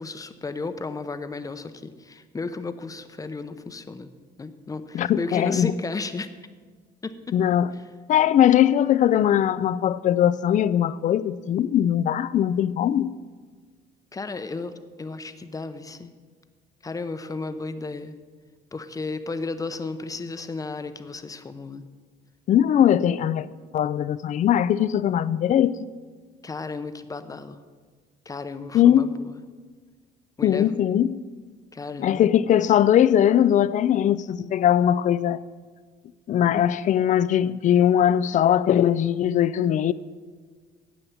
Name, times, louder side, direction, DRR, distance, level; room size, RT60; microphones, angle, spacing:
voice 1, 0.0-4.1 4.4-6.3 7.0-7.4 14.1-16.1 16.8-18.1 18.7-21.8 26.4-27.6 28.2-29.3 30.4-30.7 31.7-32.3, left 3 dB, 20° left, 0.8 m, -33 dB
voice 2, 4.9-5.7 7.3-7.7 8.1-13.2 22.5-25.9 28.7-29.1 30.4-31.2 32.0-35.4 36.3-39.9, left 10 dB, 50° left, 0.4 m, -20 dB
10.0 x 7.9 x 7.2 m
cardioid pair, 110°, 17 cm